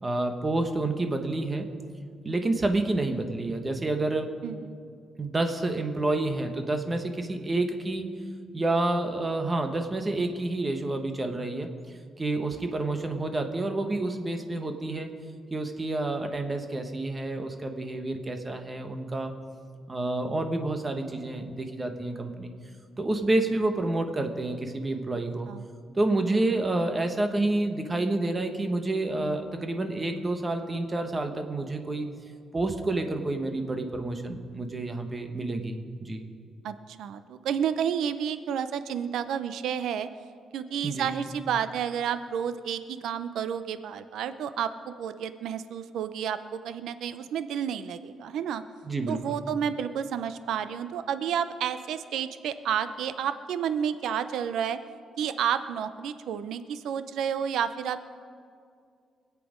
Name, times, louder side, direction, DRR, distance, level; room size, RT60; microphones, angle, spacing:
voice 1, 0.0-1.7 2.2-4.3 5.2-8.1 8.5-11.7 12.2-15.1 15.5-19.3 19.9-22.5 23.0-25.5 25.9-32.1 32.5-36.3 40.8-41.1 48.8-49.2, right 2 dB, 20° right, 6 dB, 1.1 m, -29 dB
voice 2, 4.4-4.8 25.5-25.7 36.6-40.1 40.5-48.6 49.1-54.8 55.2-58.1, right 8 dB, 90° right, 12 dB, 0.6 m, -31 dB
23.5 x 8.5 x 5.1 m, 2.2 s
cardioid pair, 165°, 0 cm